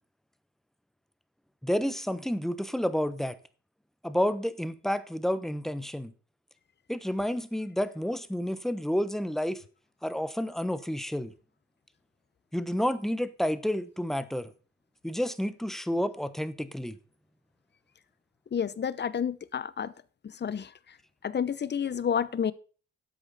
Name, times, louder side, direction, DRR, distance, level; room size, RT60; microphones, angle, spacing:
voice 1, 1.6-3.4 4.0-6.1 6.9-9.6 10.0-11.3 12.5-14.5 15.0-17.0, equal, ahead, 1.0 m, -30 dB
voice 2, 18.5-19.9 20.2-20.7 21.2-22.5, left 7 dB, 35° left, 0.9 m, -30 dB
12.5 x 8.3 x 4.1 m
cardioid pair, 90°, 30 cm